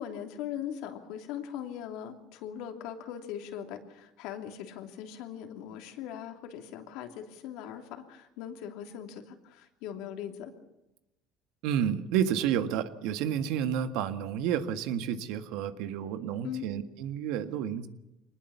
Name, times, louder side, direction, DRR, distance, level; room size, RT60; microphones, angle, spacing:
voice 1, 0.0-10.5 16.4-16.7, left 9 dB, 75° left, 5 dB, 3.1 m, -40 dB
voice 2, 11.6-17.9, right 9 dB, 75° right, 9 dB, 1.8 m, -30 dB
23.5 x 20.0 x 7.2 m, 0.92 s
supercardioid pair, 95°, 0 cm